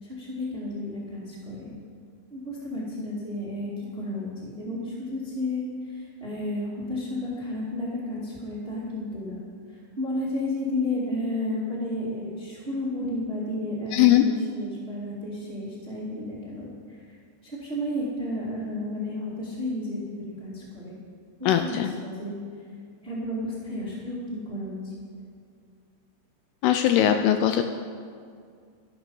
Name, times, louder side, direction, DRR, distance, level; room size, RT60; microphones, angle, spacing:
voice 1, 0.0-1.7 2.3-9.4 10.0-17.0 17.4-20.0 20.4-20.9 21.4-21.8 22.0-22.4 23.0-24.8, left 1 dB, 25° right, -5 dB, 1.2 m, -32 dB
voice 2, 13.9-14.2 21.5-21.9 26.6-27.6, left 12 dB, 80° left, 7 dB, 2.4 m, -20 dB
13.5 x 11.5 x 5.4 m, 2.2 s
omnidirectional pair, 5.0 m